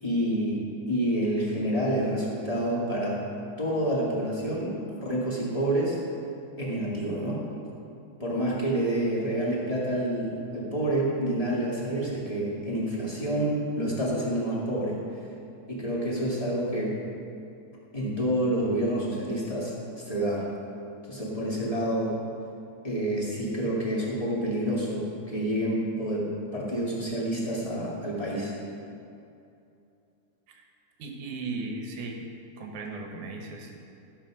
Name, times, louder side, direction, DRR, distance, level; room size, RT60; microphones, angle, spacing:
voice 1, 0.0-0.6 0.9-3.2 3.6-6.0 6.6-7.4 8.2-15.0 15.7-17.0 17.9-19.7 20.1-20.4 21.1-22.2 22.8-28.5, right 1 dB, 20° left, -6 dB, 1.0 m, -28 dB
voice 2, 31.0-32.3 32.6-33.8, right 3 dB, 65° right, 2 dB, 2.2 m, -36 dB
14.0 x 7.3 x 6.2 m, 2.7 s
omnidirectional pair, 4.5 m